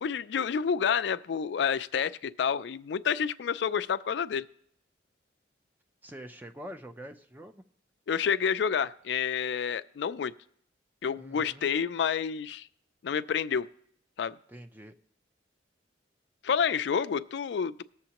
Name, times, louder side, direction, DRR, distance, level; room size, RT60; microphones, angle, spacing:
voice 1, 0.0-4.5 8.1-10.3 11.0-12.7 13.0-13.7 14.2-14.4 16.4-17.8, left 7 dB, 70° left, 13 dB, 0.4 m, -29 dB
voice 2, 6.0-7.6 11.2-11.7 14.5-14.9, equal, 10° right, 6 dB, 0.5 m, -45 dB
19.5 x 7.1 x 2.9 m, 0.69 s
head